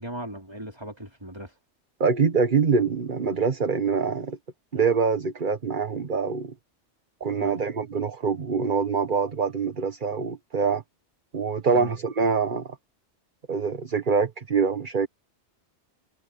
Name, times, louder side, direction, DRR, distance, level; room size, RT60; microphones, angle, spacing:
voice 1, 0.0-1.5 7.2-7.6 11.7-12.0, right 1 dB, 20° right, 4.3 m, -38 dB
voice 2, 2.0-4.4 4.7-6.5 7.2-10.8 11.3-12.7 13.5-15.1, right 5 dB, 45° right, 1.5 m, -24 dB
omnidirectional pair, 1.2 m